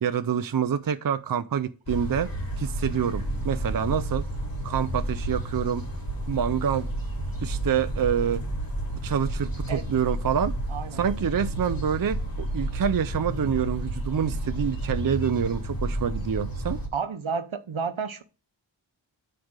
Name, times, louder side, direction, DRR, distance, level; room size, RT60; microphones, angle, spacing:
voice 1, 0.0-2.3 2.6-4.2 4.6-5.8 6.3-6.9 7.4-8.4 9.0-10.6 10.9-16.8, right 8 dB, 45° right, 0.5 m, -27 dB
sound 1, 1.9-16.9, right 1 dB, 45° left, 2.6 m, -31 dB
voice 2, 10.7-11.0 16.9-18.2, right 5 dB, 75° right, 0.9 m, -31 dB
9.5 x 3.4 x 6.5 m
wide cardioid pair, 50°, 47 cm